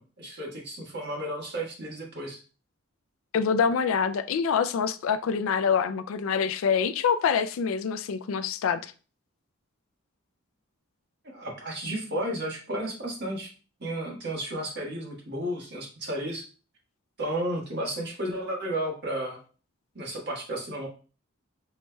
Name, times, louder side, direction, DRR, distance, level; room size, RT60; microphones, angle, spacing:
voice 1, 0.0-2.4 11.2-13.5 13.8-16.4 17.2-19.4 19.9-20.9, right 1 dB, 55° right, 1.4 m, -33 dB
voice 2, 3.3-8.9, left 6 dB, 70° left, 0.3 m, -25 dB
5.6 x 3.1 x 2.2 m
head